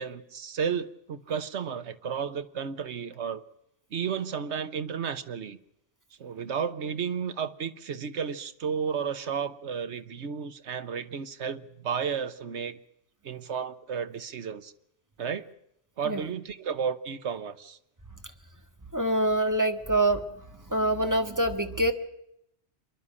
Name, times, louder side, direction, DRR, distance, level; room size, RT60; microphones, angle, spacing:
voice 1, 0.0-3.4 3.9-5.6 6.2-12.8 13.2-14.7 15.2-15.5 16.0-17.8, right 7 dB, 85° right, 11 dB, 1.3 m, -33 dB
voice 2, 18.9-20.2 20.7-21.9, right 1 dB, 15° right, 7 dB, 1.4 m, -25 dB
27.0 x 11.0 x 8.7 m, 0.80 s
omnidirectional pair, 1.1 m